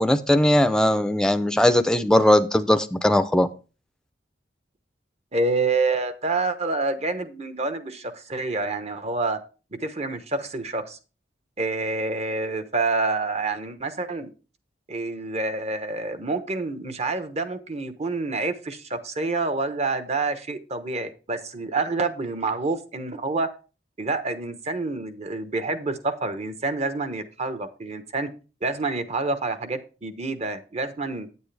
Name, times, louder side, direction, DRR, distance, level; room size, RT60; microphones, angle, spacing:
voice 1, 0.0-3.5, left 1 dB, 5° left, 8 dB, 0.5 m, -19 dB
voice 2, 5.3-9.4 9.8-11.0 11.6-14.3 14.9-23.5 24.0-28.3 28.6-31.3, right 3 dB, 40° right, 10 dB, 1.0 m, -27 dB
9.2 x 8.2 x 3.4 m, 0.34 s
head